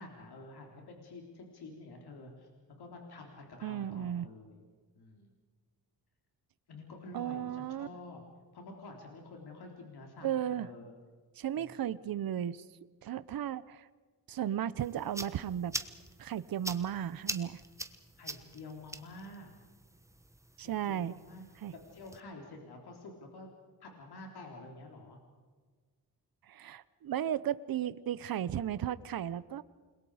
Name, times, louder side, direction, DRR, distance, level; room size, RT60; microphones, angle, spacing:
voice 1, 0.0-2.5 2.8-4.6 4.9-5.3 6.7-8.2 8.5-10.9 11.5-11.7 18.2-19.6 20.6-21.4 21.7-23.5 23.8-25.2, left 2 dB, 90° left, 1 dB, 3.8 m, -49 dB
voice 2, 3.6-4.3 7.1-7.9 10.2-10.7 11.4-12.6 13.0-13.9 14.3-15.7 16.2-17.6 20.6-21.2 21.6-21.7 26.5-29.6, right 10 dB, 65° right, 16 dB, 0.8 m, -35 dB
sound 1, 14.8-22.2, right 1 dB, 10° right, 1.2 m, -44 dB
29.0 x 22.0 x 5.0 m, 1.5 s
wide cardioid pair, 135°, 38 cm